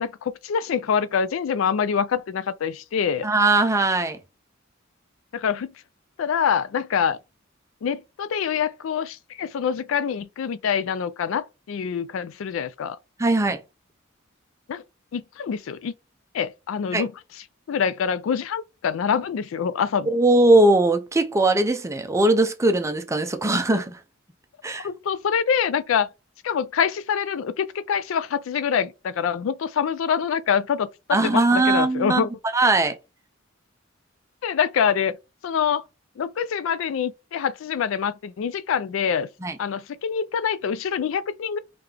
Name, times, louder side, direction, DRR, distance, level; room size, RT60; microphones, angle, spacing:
voice 1, 0.0-3.3 5.3-5.7 6.2-7.2 7.8-13.0 14.7-14.8 15.1-15.9 16.3-17.1 17.7-20.1 24.8-26.1 26.4-32.3 34.4-35.1 35.4-35.8 36.2-39.3 39.6-41.6, left 7 dB, 75° left, 0.3 m, -25 dB
voice 2, 3.2-4.2 13.2-13.6 16.9-17.0 20.1-24.0 24.6-24.9 31.1-32.3 32.5-32.9 39.4-39.5, right 2 dB, 15° right, 0.5 m, -20 dB
3.7 x 3.3 x 3.3 m
head